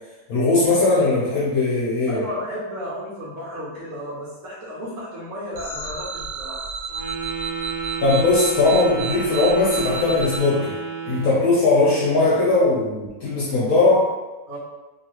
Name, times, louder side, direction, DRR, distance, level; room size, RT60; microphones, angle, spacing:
voice 1, 0.3-2.2 8.0-10.7 11.0-14.1, left 3 dB, 65° left, -6 dB, 1.0 m, -19 dB
voice 2, 2.1-6.6 14.5-14.6, equal, 60° right, -8 dB, 1.2 m, -33 dB
sound 1, 5.5-10.4, right 4 dB, 85° right, 1.5 m, -31 dB
Wind instrument woodwind instrument, 6.9-11.5, right 6 dB, 40° right, 0.5 m, -31 dB
2.9 x 2.6 x 2.9 m, 1.1 s
omnidirectional pair, 1.9 m